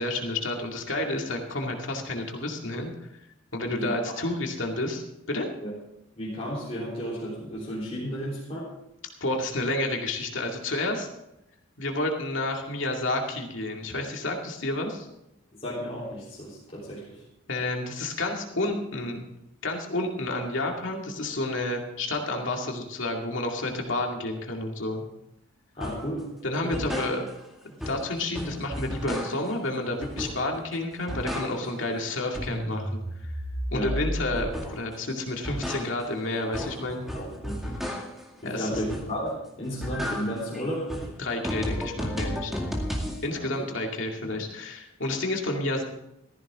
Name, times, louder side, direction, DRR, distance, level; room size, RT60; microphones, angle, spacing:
voice 1, 0.0-3.1 3.5-5.5 9.2-11.1 11.8-15.1 17.5-19.2 19.6-25.0 26.4-27.3 27.6-33.0 33.7-37.0 38.4-38.8 41.2-42.5 43.2-45.8, left 2 dB, 65° left, 1 dB, 2.3 m, -30 dB
voice 2, 6.2-8.7 15.5-17.2 25.7-26.3 26.6-26.8 33.7-33.9 37.1-37.7 38.4-40.9 43.3-43.5, equal, 30° left, -8 dB, 3.7 m, -33 dB
sound 1, 25.8-26.1 26.5-27.5 27.8-29.6 30.0-30.6 30.9-31.9 32.2-34.9 35.3-38.3 38.7-39.3 39.6-43.2, equal, ahead, 2.2 m, -33 dB
15.5 x 14.5 x 3.7 m, 0.86 s
head